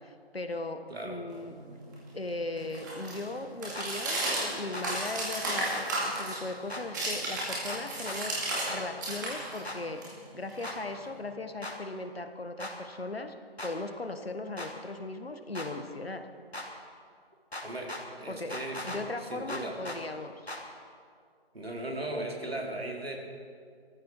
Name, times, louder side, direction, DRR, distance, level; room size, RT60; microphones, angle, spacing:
voice 1, 0.0-1.6 2.1-10.0 10.3-13.3 13.6-16.3 18.3-18.6 18.8-20.5, left 2 dB, 70° left, 8 dB, 1.5 m, -38 dB
voice 2, 0.9-1.2 17.6-19.8 21.5-23.2, right 1 dB, 75° right, 0 dB, 3.2 m, -37 dB
sound 1, 1.3-8.7 9.0-11.2, right 1 dB, 20° right, 2.4 m, -34 dB
sound 2, 3.7-3.9 4.7-4.9 5.7-5.9 6.7-6.8 7.7-8.2 8.7-8.8 9.6-9.8 10.6-10.8 11.6-11.8 12.6-12.7 13.6-13.7 14.6-14.7 15.5-15.7 16.5-16.7 17.5-18.0 18.5-19.0 19.5-20.0 20.5-20.6, left 1 dB, 90° left, 3.2 m, -38 dB
19.5 x 14.5 x 4.8 m, 2.2 s
figure-of-eight pair, 160°, 31 cm